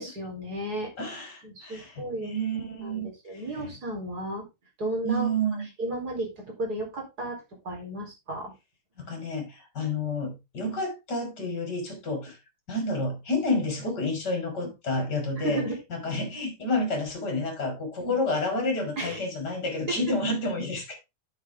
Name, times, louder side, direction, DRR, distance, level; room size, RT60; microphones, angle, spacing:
voice 1, 0.0-0.9 1.4-2.3 2.8-4.5 4.8-5.3 5.8-8.5 14.6-14.7 15.3-15.7 18.0-18.1 19.0-19.2, right 1 dB, 25° right, 0 dB, 4.1 m, -34 dB
voice 2, 1.0-3.1 3.6-3.7 5.0-5.7 9.0-12.4 12.7-15.6 15.9-20.9, left 1 dB, 25° left, 3 dB, 3.8 m, -29 dB
9.5 x 7.2 x 3.6 m, 0.24 s
omnidirectional pair, 4.6 m